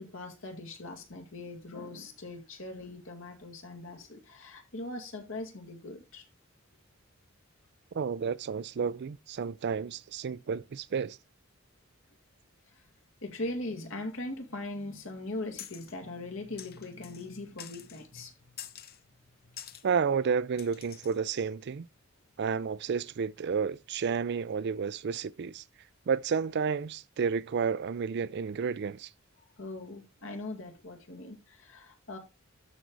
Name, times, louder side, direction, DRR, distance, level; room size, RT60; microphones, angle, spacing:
voice 1, 0.0-6.2 13.2-18.3 29.6-32.2, left 2 dB, 70° left, 2.2 m, -40 dB
voice 2, 7.9-11.2 19.8-21.9 22.4-25.6 26.1-29.1, right 6 dB, 55° right, 0.4 m, -31 dB
sound 1, 15.6-16.0 16.6-17.3 17.6-18.0 18.6-19.0 19.6-19.9 20.6-21.2, left 10 dB, 50° left, 0.8 m, -46 dB
12.5 x 4.7 x 3.9 m
head